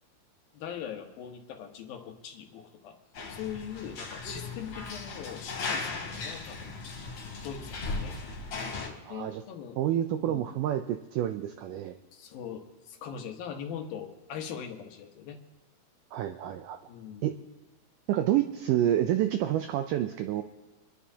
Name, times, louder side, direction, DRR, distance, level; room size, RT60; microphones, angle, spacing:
voice 1, 0.5-2.9 3.3-6.7 7.4-8.2 9.1-9.8 10.2-10.5 12.1-15.4 16.9-17.3, left 8 dB, 75° left, 3 dB, 3.0 m, -41 dB
sound 1, 3.1-8.9, left 3 dB, 50° left, 3.9 m, -37 dB
voice 2, 9.1-9.4 9.8-12.0 16.1-16.8 17.2-17.3 18.1-20.4, right 12 dB, 85° right, 8 dB, 1.8 m, -28 dB
26.0 x 11.0 x 2.8 m, 1.2 s
omnidirectional pair, 4.3 m